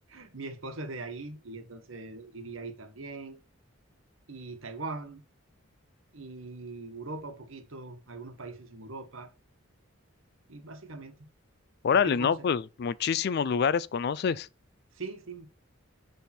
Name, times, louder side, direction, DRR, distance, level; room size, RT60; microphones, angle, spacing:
voice 1, 0.1-3.4 4.3-5.2 6.1-9.3 10.5-11.3 11.9-12.5 14.9-15.5, right 3 dB, 70° right, 1.3 m, -41 dB
voice 2, 11.8-14.5, left 6 dB, 50° left, 0.3 m, -26 dB
10.5 x 3.5 x 4.2 m
head